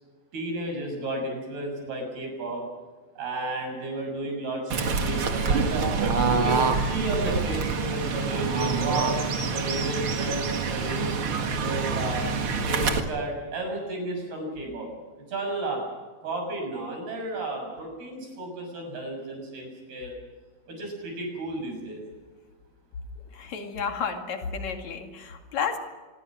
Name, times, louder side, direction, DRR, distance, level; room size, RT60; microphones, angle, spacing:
voice 1, 0.3-2.6 3.2-5.9 6.2-9.2 9.5-11.1 11.5-12.3 12.6-14.9 15.3-15.8 16.2-20.1 20.7-22.0, right 2 dB, 50° right, 2 dB, 8.5 m, -33 dB
Fowl / Bird, 4.7-13.0, right 4 dB, 85° right, 1.1 m, -26 dB
voice 2, 23.3-25.8, left 6 dB, 45° left, 4 dB, 2.8 m, -31 dB
26.5 x 22.5 x 6.3 m, 1.3 s
omnidirectional pair, 5.6 m